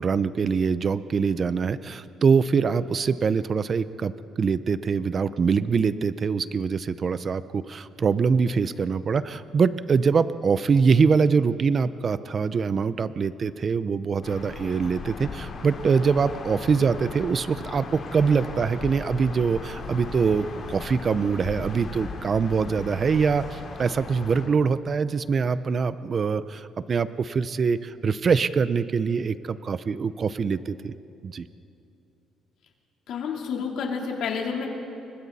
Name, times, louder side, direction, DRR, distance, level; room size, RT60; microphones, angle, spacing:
voice 1, 0.0-4.1 4.4-30.9 31.2-31.5, right 5 dB, 30° right, 14 dB, 0.5 m, -24 dB
sound 1, 14.2-24.5, left 3 dB, 40° left, 3.5 m, -38 dB
voice 2, 33.1-34.7, left 6 dB, 65° left, 0 dB, 3.4 m, -29 dB
29.5 x 24.5 x 4.1 m, 2.7 s
cardioid pair, 160°, 0 cm